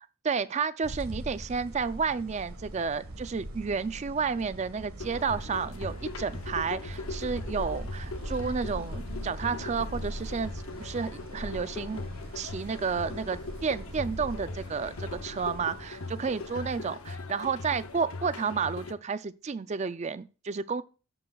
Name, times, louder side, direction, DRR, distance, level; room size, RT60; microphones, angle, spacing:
voice 1, 0.2-12.0 12.3-20.8, right 5 dB, 30° right, 0.3 m, -31 dB
sound 1, 0.8-16.7, right 1 dB, 70° right, 1.5 m, -41 dB
sound 2, 5.0-18.9, left 3 dB, 70° left, 0.7 m, -40 dB
13.5 x 7.8 x 2.3 m
head